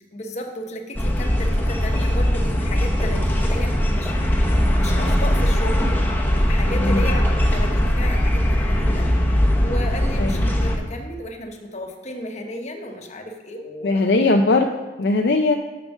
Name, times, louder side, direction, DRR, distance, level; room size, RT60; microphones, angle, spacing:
voice 1, 0.1-6.0 6.3-9.1 9.6-14.1, left 1 dB, 40° left, 4 dB, 1.0 m, -34 dB
sound 1, 1.0-10.8, equal, 10° left, 0.9 m, -20 dB
voice 2, 6.8-7.1 10.2-10.4 13.8-15.6, left 3 dB, 60° left, 4 dB, 0.5 m, -20 dB
7.1 x 6.7 x 6.2 m, 1.2 s
head